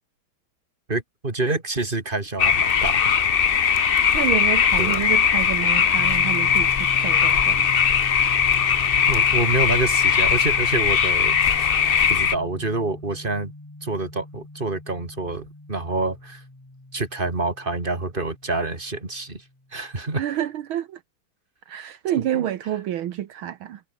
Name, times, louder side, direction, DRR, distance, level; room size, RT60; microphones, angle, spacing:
voice 1, 0.9-3.1 4.8-5.0 9.1-11.6 12.1-13.5 13.8-16.4 16.9-19.4 19.7-20.2 22.3-22.4, right 3 dB, 25° right, 3.2 m, -27 dB
sound 1, 2.4-12.3, left 7 dB, 85° left, 0.5 m, -20 dB
voice 2, 4.1-7.7 20.2-21.0 21.7-23.8, right 11 dB, 75° right, 1.9 m, -28 dB
sound 2, 6.0-19.6, left 2 dB, 10° left, 1.8 m, -40 dB
omnidirectional pair, 2.3 m